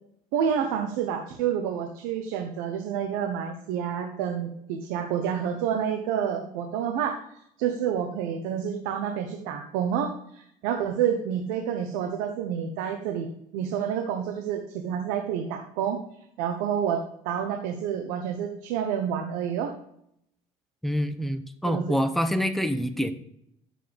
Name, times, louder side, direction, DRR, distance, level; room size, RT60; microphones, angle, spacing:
voice 1, 0.3-13.3 13.5-16.0 16.4-19.7 21.6-22.0, right 8 dB, 90° right, 5 dB, 1.0 m, -29 dB
voice 2, 20.8-23.1, equal, ahead, 9 dB, 0.8 m, -26 dB
10.0 x 7.5 x 3.4 m, 0.73 s
cardioid pair, 120°, 14 cm